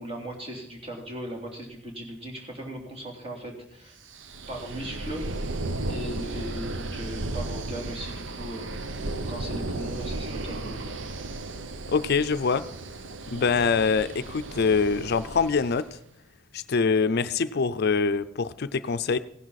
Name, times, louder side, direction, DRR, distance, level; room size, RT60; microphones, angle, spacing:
voice 1, 0.0-4.0 4.5-8.9 9.3-10.9, right 1 dB, 30° right, 0 dB, 3.4 m, -38 dB
sound 1, 4.1-15.9, right 2 dB, 75° right, 0.9 m, -35 dB
voice 2, 11.9-12.6 13.3-15.9 16.5-19.2, left 5 dB, 55° left, 13 dB, 0.5 m, -24 dB
16.5 x 11.0 x 4.1 m, 0.78 s
head